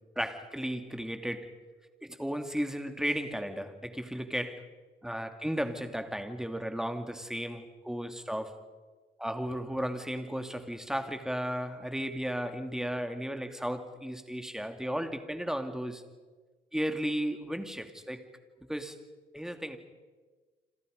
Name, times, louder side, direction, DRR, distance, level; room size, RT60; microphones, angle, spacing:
voice 1, 0.2-1.5 2.0-4.7 5.0-8.6 9.2-16.0 16.7-18.2 18.7-19.0 19.3-19.8, equal, ahead, 7 dB, 2.6 m, -34 dB
29.5 x 26.5 x 5.3 m, 1.4 s
cardioid pair, 90°, 20 cm